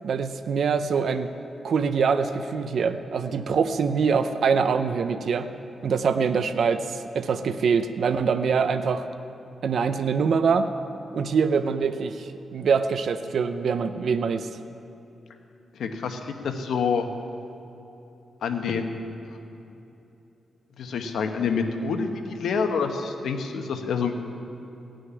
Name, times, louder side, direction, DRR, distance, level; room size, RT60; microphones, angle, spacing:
voice 1, 0.0-1.3 1.6-5.5 5.8-9.0 9.6-10.7 11.1-14.5, right 5 dB, 65° right, 9 dB, 0.6 m, -24 dB
voice 2, 15.7-17.1 18.4-18.9 19.3-19.4 19.7-19.8 20.8-24.2, left 5 dB, 85° left, 5 dB, 1.1 m, -27 dB
16.5 x 6.3 x 9.6 m, 3.0 s
wide cardioid pair, 120°, 0 cm